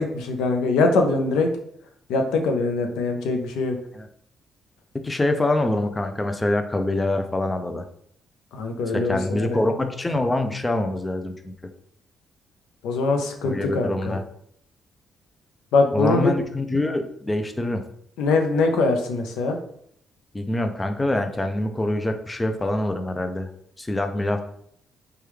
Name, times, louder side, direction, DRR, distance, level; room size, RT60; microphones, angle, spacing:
voice 1, 0.0-1.5 2.1-3.8 8.5-9.6 12.8-14.2 15.7-16.3 18.2-19.6, left 3 dB, 90° left, 4 dB, 0.5 m, -22 dB
voice 2, 5.0-7.8 8.9-11.5 13.4-14.2 15.9-17.8 20.3-23.5 23.8-24.4, left 1 dB, 15° left, 7 dB, 0.4 m, -25 dB
3.0 x 2.3 x 3.3 m, 0.68 s
cardioid pair, 90°, 0 cm